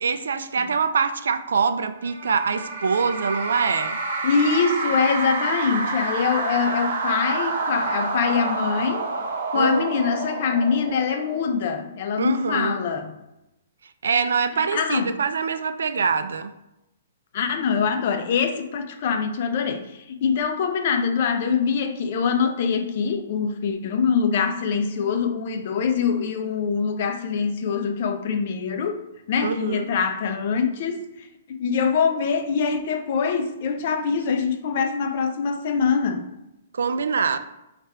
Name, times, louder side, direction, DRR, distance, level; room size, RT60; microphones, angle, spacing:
voice 1, 0.0-4.0 9.5-9.8 12.2-12.8 14.0-16.5 29.4-29.9 36.7-37.4, right 5 dB, 90° right, 0.3 m, -24 dB
sound 1, 2.0-11.7, right 3 dB, 70° right, 0.9 m, -28 dB
voice 2, 4.2-9.1 9.5-13.2 14.7-15.1 17.3-29.0 29.3-36.2, left 6 dB, 50° left, 0.5 m, -24 dB
3.3 x 2.4 x 4.2 m
hypercardioid pair, 155°, 0 cm